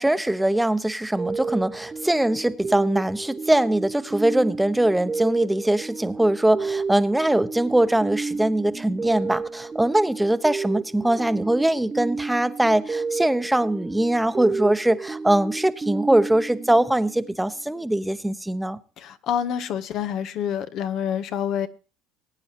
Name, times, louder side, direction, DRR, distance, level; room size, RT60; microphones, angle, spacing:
voice 1, 0.0-18.8, right 1 dB, 5° right, 1.0 m, -22 dB
sound 1, 1.2-17.5, right 4 dB, 25° right, 0.6 m, -32 dB
voice 2, 19.0-21.7, left 9 dB, 60° left, 0.8 m, -27 dB
21.0 x 9.1 x 2.8 m
hypercardioid pair, 75°, 0 cm